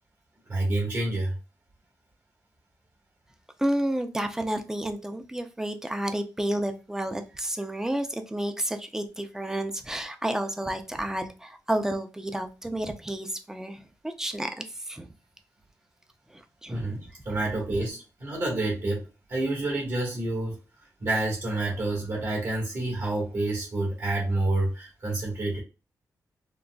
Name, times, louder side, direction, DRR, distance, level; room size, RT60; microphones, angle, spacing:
voice 1, 0.5-1.3 16.7-20.6 21.0-25.6, right 2 dB, 60° right, 1.4 m, -28 dB
voice 2, 3.6-15.1 16.3-17.0, right 1 dB, 10° right, 0.5 m, -31 dB
3.9 x 2.0 x 2.2 m
cardioid pair, 90°, 6 cm